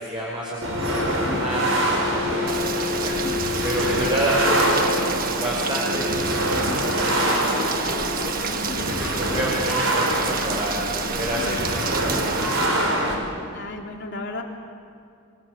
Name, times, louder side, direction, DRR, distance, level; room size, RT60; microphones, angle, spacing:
voice 1, 0.0-3.1 3.6-4.9 5.2-8.3 8.8-10.7 11.1-12.9, right 1 dB, 20° right, -6 dB, 5.9 m, -29 dB
sound 1, 0.6-13.1, equal, 60° right, 5.3 m, -25 dB
Rain, 2.5-12.7, right 6 dB, 40° right, 1.3 m, -30 dB
voice 2, 13.5-14.4, left 2 dB, 50° left, 1 dB, 3.5 m, -33 dB
27.0 x 26.5 x 8.3 m, 2.5 s
head